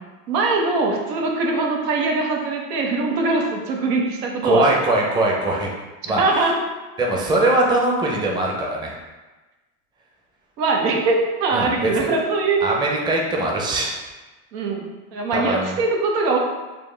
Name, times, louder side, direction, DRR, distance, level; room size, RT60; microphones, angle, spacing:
voice 1, 0.3-4.7 6.0-6.5 10.6-12.6 14.5-16.4, right 3 dB, 85° right, 0 dB, 1.0 m, -22 dB
voice 2, 4.4-5.7 6.1-6.2 7.0-8.9 11.5-12.1 12.6-13.9 15.3-15.8, right 1 dB, 10° right, -2 dB, 0.6 m, -21 dB
5.2 x 2.0 x 3.3 m, 1.2 s
supercardioid pair, 105°, 47 cm